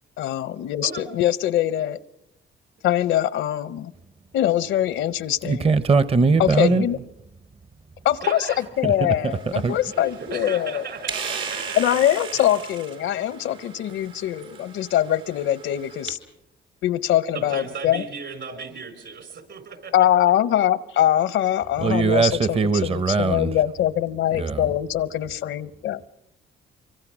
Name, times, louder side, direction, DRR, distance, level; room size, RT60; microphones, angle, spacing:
voice 1, 0.2-2.0 2.8-3.9 4.3-5.7 6.4-7.0 8.0-8.5 8.8-10.8 11.8-16.2 16.8-18.0 19.9-22.6 22.8-26.1, left 12 dB, 80° left, 0.8 m, -23 dB
voice 2, 5.4-6.9 8.8-8.9 9.2-9.3 9.6-9.8 21.8-23.5 24.4-24.6, right 4 dB, 30° right, 0.7 m, -20 dB
voice 3, 6.6-7.0 8.2-8.6 9.9-12.4 17.3-20.1, right 4 dB, 65° right, 5.1 m, -36 dB
sound 1, 9.3-16.1, right 6 dB, 80° right, 3.4 m, -37 dB
24.5 x 24.0 x 6.1 m
cardioid pair, 90°, 20 cm